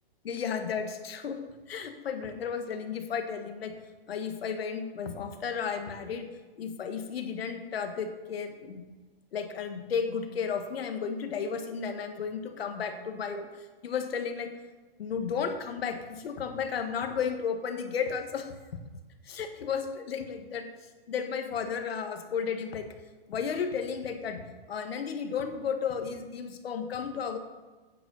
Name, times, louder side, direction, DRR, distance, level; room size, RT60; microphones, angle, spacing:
voice 1, 0.2-1.4 1.7-3.8 4.1-6.3 6.6-8.9 9.3-13.5 13.8-14.5 15.0-18.5 19.2-20.7 21.1-22.9 23.3-27.4, left 6 dB, 80° left, 6 dB, 1.6 m, -33 dB
10.5 x 9.3 x 4.0 m, 1.3 s
hypercardioid pair, 145°, 29 cm